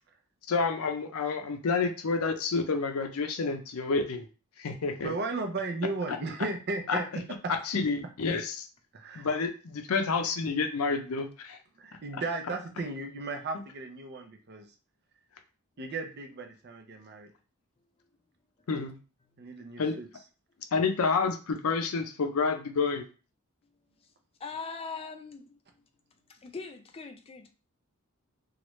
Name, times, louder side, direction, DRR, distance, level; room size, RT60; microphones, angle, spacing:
voice 1, 0.5-4.3 4.6-5.1 6.1-6.2 6.9-7.0 7.5-8.7 9.1-11.6 18.7-19.0 19.8-20.0 20.7-23.1, left 4 dB, 75° left, 0.5 m, -29 dB
voice 2, 5.0-7.5 8.9-9.3 11.8-14.7 15.8-17.3 19.4-20.1, right 3 dB, 50° right, 0.6 m, -35 dB
voice 3, 24.4-25.6 26.3-27.5, left 4 dB, 25° left, 0.4 m, -41 dB
3.1 x 2.4 x 3.0 m
head